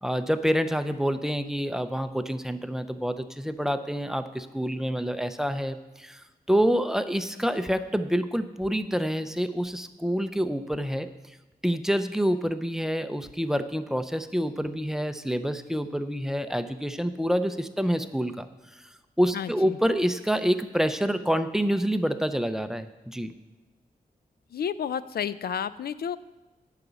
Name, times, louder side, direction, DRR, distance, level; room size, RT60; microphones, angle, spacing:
voice 1, 0.0-11.4 11.6-18.5 18.7-18.8 19.2-23.3, equal, 5° right, 10 dB, 0.4 m, -27 dB
voice 2, 19.3-19.8 24.5-26.2, left 8 dB, 85° left, 15 dB, 0.4 m, -31 dB
11.0 x 5.0 x 8.0 m, 1.1 s
wide cardioid pair, 170°, 16 cm